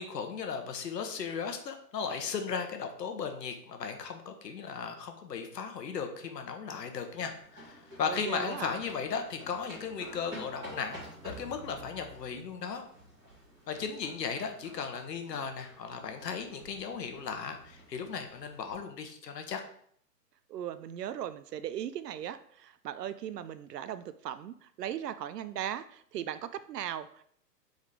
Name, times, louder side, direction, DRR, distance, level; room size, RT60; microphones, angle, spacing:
voice 1, 0.0-12.8 13.7-19.6, left 6 dB, 75° left, 5 dB, 1.1 m, -36 dB
sound 1, 6.9-18.7, equal, 5° right, 1.7 m, -50 dB
voice 2, 8.0-8.8 20.5-27.3, right 10 dB, 75° right, 13 dB, 0.6 m, -38 dB
5.1 x 4.0 x 4.8 m, 0.64 s
hypercardioid pair, 180°, 49 cm